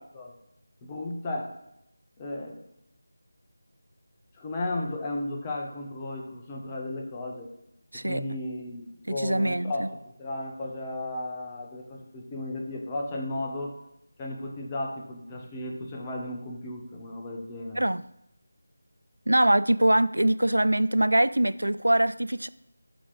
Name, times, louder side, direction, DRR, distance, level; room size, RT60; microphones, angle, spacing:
voice 1, 0.8-1.5 2.2-2.6 4.3-7.5 7.9-13.8 14.2-17.8, left 2 dB, 20° left, 0.9 m, -34 dB
voice 2, 9.1-9.9 17.7-18.0 19.3-22.5, right 1 dB, 85° right, 0.3 m, -23 dB
7.7 x 3.1 x 6.1 m
figure-of-eight pair, 165°, 0 cm